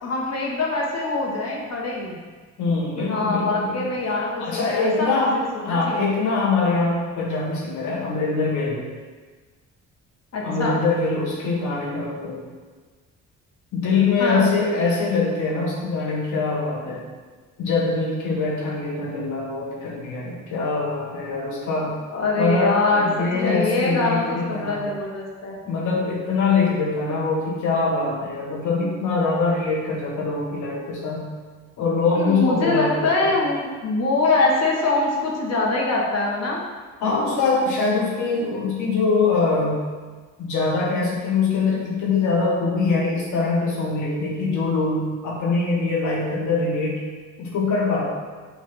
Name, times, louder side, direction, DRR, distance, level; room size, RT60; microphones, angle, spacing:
voice 1, 0.0-2.2 3.0-6.1 10.3-10.8 14.2-14.5 22.1-25.6 32.1-36.6, left 2 dB, 55° left, -2 dB, 1.3 m, -24 dB
voice 2, 2.6-3.9 4.4-5.4 5.6-8.8 10.4-12.4 13.7-17.1 17.6-22.0 22.4-24.9 25.7-31.3 31.8-33.3 37.0-39.8 40.4-47.0 47.4-48.0, left 4 dB, 80° left, -3 dB, 1.6 m, -23 dB
6.2 x 2.8 x 5.4 m, 1.4 s
cardioid pair, 90°, 30 cm